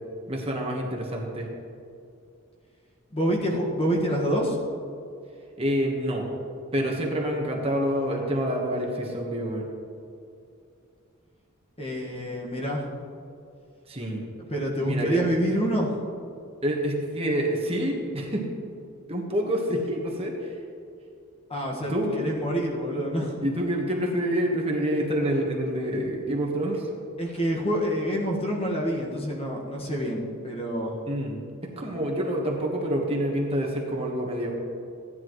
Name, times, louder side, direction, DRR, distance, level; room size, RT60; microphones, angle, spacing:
voice 1, 0.3-1.5 5.6-6.3 6.7-9.7 13.9-14.2 14.8-15.2 16.6-18.4 19.1-20.5 21.9-22.3 23.4-26.9 31.1-31.4 31.8-34.5, equal, 25° right, -1 dB, 1.3 m, -27 dB
voice 2, 3.1-4.6 11.8-12.8 14.5-15.9 21.5-23.3 27.2-31.0, equal, 25° left, -1 dB, 1.6 m, -27 dB
15.0 x 10.5 x 3.1 m, 2.5 s
head